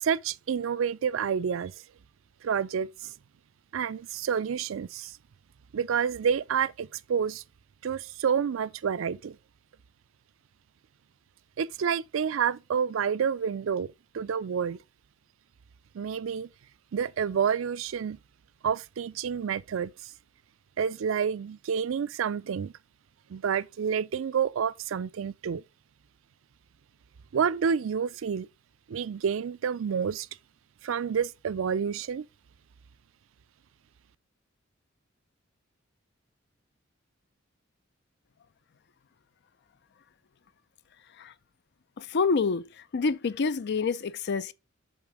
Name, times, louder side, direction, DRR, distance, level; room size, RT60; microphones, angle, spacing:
voice 1, 0.0-1.7 2.4-3.1 3.7-5.1 5.7-7.4 7.8-9.4 11.6-13.9 14.1-14.8 15.9-16.5 16.9-18.2 18.6-19.9 20.8-22.7 23.3-25.6 27.3-28.5 28.9-30.3 30.8-32.2, right 7 dB, 75° right, 0.4 m, -29 dB
voice 2, 42.0-44.5, left 4 dB, 55° left, 0.5 m, -27 dB
7.3 x 3.8 x 4.9 m
head